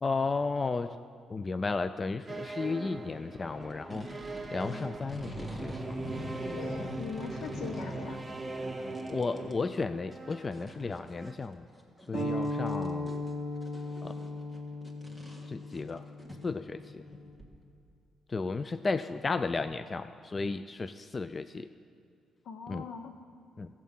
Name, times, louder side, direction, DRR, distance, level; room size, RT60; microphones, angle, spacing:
voice 1, 0.0-1.0 1.3-4.1 4.5-6.0 9.1-11.6 12.1-13.1 14.0-14.1 15.5-16.0 16.4-17.0 18.3-21.7 22.7-22.9 23.6-23.7, left 4 dB, 30° left, 12 dB, 0.3 m, -34 dB
sound 1, 2.3-11.4, right 2 dB, 20° right, 0.9 m, -40 dB
sound 2, 3.6-8.3 8.7-9.5 9.8-9.9 10.1-17.6, left 1 dB, 15° left, 1.5 m, -44 dB
voice 2, 6.5-8.2 12.3-12.4 22.4-23.1, left 5 dB, 75° left, 7 dB, 0.9 m, -41 dB
sound 3, 12.1-17.3, left 1 dB, 50° left, 2.4 m, -37 dB
14.5 x 7.4 x 5.4 m, 2.4 s
cardioid pair, 90°, 0 cm